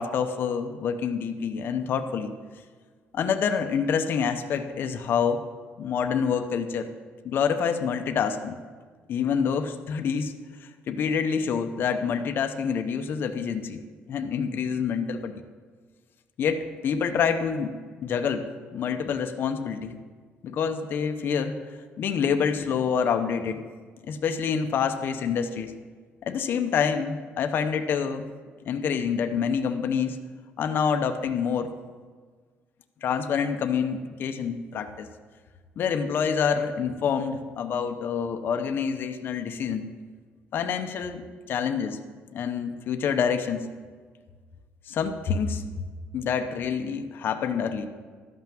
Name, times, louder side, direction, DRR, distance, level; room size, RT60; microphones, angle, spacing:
voice 1, 0.0-2.3 3.1-5.4 5.8-6.9 7.2-8.6 9.1-10.3 10.6-13.8 14.1-15.3 16.4-17.7 18.0-20.0 20.4-21.5 22.0-23.6 24.1-25.7 26.2-28.3 28.7-30.2 30.6-31.7 33.0-35.1 35.8-39.9 40.5-41.2 41.5-42.0 42.3-43.6 44.9-45.6 46.1-47.9, left 6 dB, 50° left, 6 dB, 0.8 m, -27 dB
13.0 x 5.9 x 7.5 m, 1.6 s
cardioid pair, 140°, 5 cm